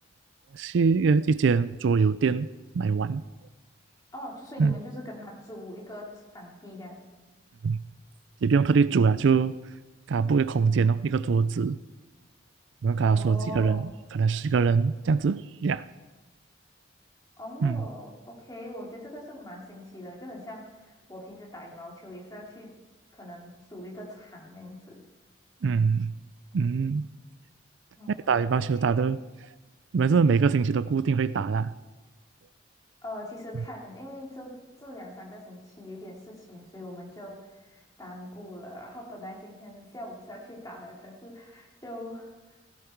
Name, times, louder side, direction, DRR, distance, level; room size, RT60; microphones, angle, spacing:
voice 1, 0.5-2.5 2.7-3.2 4.6-4.8 7.6-7.8 8.4-9.6 10.1-11.8 12.8-13.8 14.1-15.8 17.6-17.8 25.6-26.1 26.5-27.1 28.3-29.2 29.9-31.7, right 5 dB, 65° right, 16 dB, 0.4 m, -23 dB
voice 2, 4.1-7.0 13.0-13.9 17.4-22.7 23.1-25.0 28.0-28.4 28.7-29.1 33.0-42.6, left 1 dB, 15° left, -2 dB, 3.2 m, -42 dB
16.5 x 16.0 x 4.6 m, 1.2 s
head